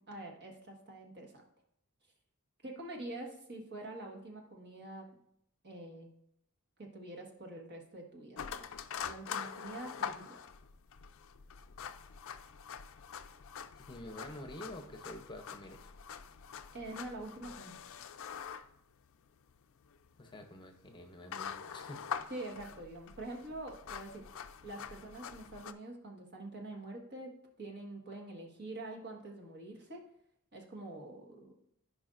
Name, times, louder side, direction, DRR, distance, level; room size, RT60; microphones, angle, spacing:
voice 1, 0.1-1.4 2.6-5.1 5.6-6.1 6.8-8.6 9.0-10.4 16.7-17.8 22.3-24.2 24.6-27.3 27.6-30.0 30.5-31.5, right 2 dB, 50° right, 1 dB, 1.5 m, -45 dB
sound 1, 8.4-25.7, left 7 dB, 60° left, 0.4 m, -45 dB
voice 2, 13.8-15.9 20.2-22.0, left 1 dB, 20° left, 5 dB, 0.8 m, -48 dB
15.0 x 5.3 x 2.5 m, 0.75 s
head